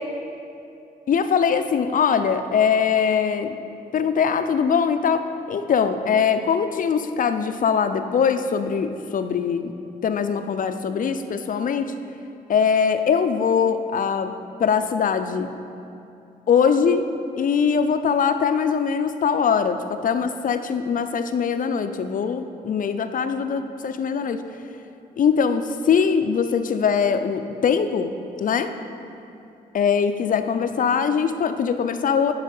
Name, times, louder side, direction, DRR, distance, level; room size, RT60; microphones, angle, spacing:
voice 1, 1.1-3.6 3.9-9.7 10.0-11.9 12.5-14.3 14.6-15.5 16.5-17.0 17.4-24.4 25.2-28.1 28.4-28.7 29.7-32.3, left 6 dB, 50° left, 9 dB, 0.6 m, -22 dB
10.5 x 4.9 x 5.4 m, 2.7 s
supercardioid pair, 65°, 17 cm